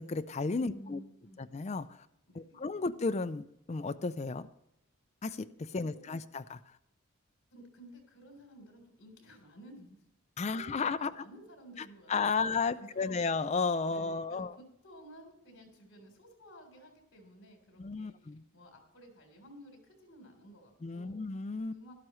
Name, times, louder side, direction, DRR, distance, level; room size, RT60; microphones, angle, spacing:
voice 1, 0.0-1.0 1.5-2.1 2.4-4.5 5.2-6.6 10.4-11.1 12.1-14.5 17.8-18.4 20.8-21.7, left 4 dB, 30° left, 11 dB, 0.4 m, -33 dB
voice 2, 0.6-1.4 2.3-2.6 5.7-6.4 7.5-10.1 10.4-13.2 13.9-21.2 21.7-21.9, right 1 dB, 60° left, 2 dB, 3.6 m, -54 dB
12.5 x 12.0 x 3.1 m, 0.82 s
head